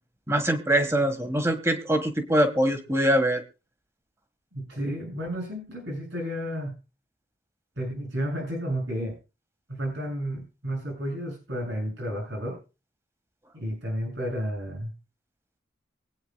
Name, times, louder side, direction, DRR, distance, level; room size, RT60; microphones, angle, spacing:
voice 1, 0.3-3.4, right 1 dB, 15° right, 7 dB, 1.7 m, -23 dB
voice 2, 4.5-6.8 7.8-9.1 9.7-12.6 13.5-14.9, equal, 85° right, -1 dB, 7.4 m, -32 dB
24.0 x 9.4 x 2.3 m, 0.30 s
head